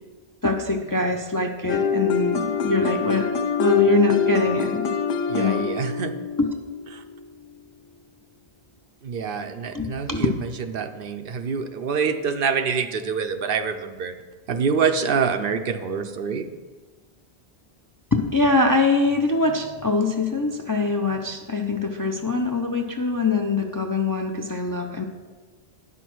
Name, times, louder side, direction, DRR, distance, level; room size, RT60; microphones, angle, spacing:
voice 1, 0.4-3.3 3.6-4.9 5.3-5.6 6.4-6.5 9.7-10.3 18.1-25.0, left 3 dB, 30° left, 3 dB, 0.4 m, -23 dB
sound 1, 1.7-7.5, left 6 dB, 85° left, 0.9 m, -25 dB
voice 2, 5.3-6.1 6.9-7.0 9.0-14.1 14.5-16.5, right 6 dB, 65° right, 7 dB, 0.7 m, -26 dB
9.9 x 6.1 x 4.6 m, 1.4 s
omnidirectional pair, 1.1 m